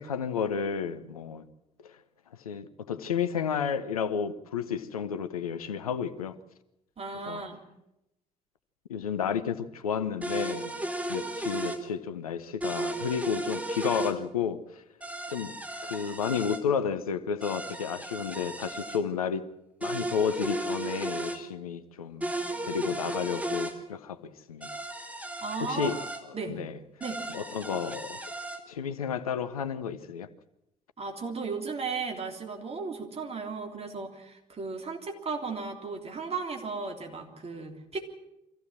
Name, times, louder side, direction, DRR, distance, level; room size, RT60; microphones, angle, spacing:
voice 1, 0.0-1.5 1.8-1.9 2.4-6.4 7.3-7.4 8.9-10.7 11.1-14.8 15.3-15.5 15.8-19.4 19.8-22.3 22.6-24.8 25.6-26.0 26.5-26.8 27.3-28.2 28.7-30.3, left 7 dB, 80° left, 0.7 m, -32 dB
voice 2, 7.0-7.6 25.4-25.9 26.3-26.6 27.0-27.2 31.0-38.0, right 4 dB, 35° right, 3.3 m, -35 dB
sound 1, 10.2-11.8 12.6-14.1 15.0-16.6 17.4-19.0 19.8-21.4 22.2-23.7 24.6-26.2 27.0-28.6, right 1 dB, 5° right, 2.4 m, -35 dB
24.0 x 15.0 x 7.4 m
figure-of-eight pair, 50°, 18 cm